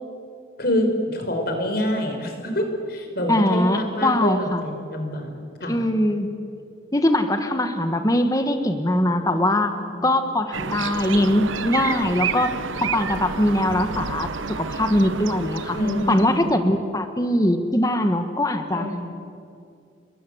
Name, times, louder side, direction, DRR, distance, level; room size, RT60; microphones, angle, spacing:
voice 1, 0.6-5.3 5.6-5.8 9.3-10.0 15.7-16.5 18.7-19.1, left 1 dB, 50° left, 4 dB, 5.0 m, -26 dB
voice 2, 3.3-4.7 5.7-6.3 6.9-12.5 12.8-15.8 16.1-18.9, left 1 dB, 20° left, 7 dB, 1.4 m, -22 dB
sound 1, 10.5-16.5, right 5 dB, 90° right, 1.0 m, -30 dB
30.0 x 22.5 x 7.9 m, 2.4 s
head